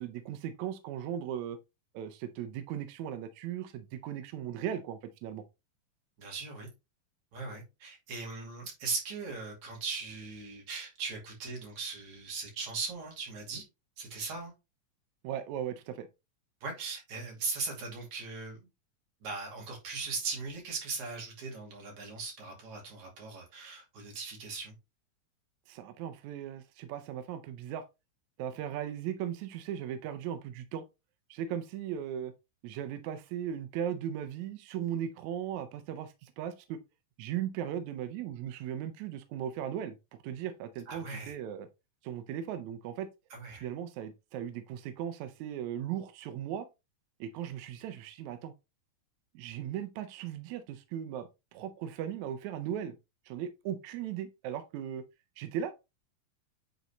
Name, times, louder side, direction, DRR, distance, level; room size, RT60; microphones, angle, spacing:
voice 1, 0.0-1.6 1.9-5.4 15.2-16.1 25.7-27.8 28.4-30.8 31.3-32.3 32.6-36.8 37.2-40.0 40.2-41.7 42.0-43.1 43.6-46.7 47.2-48.5 49.3-53.0 53.3-55.0 55.4-55.8, right 10 dB, 75° right, 1.7 m, -37 dB
voice 2, 6.2-6.7 7.3-13.6 14.0-14.5 16.6-18.6 19.2-24.7 40.9-41.4 43.3-43.7, right 4 dB, 60° right, 3.7 m, -39 dB
9.2 x 4.0 x 3.1 m
omnidirectional pair, 3.9 m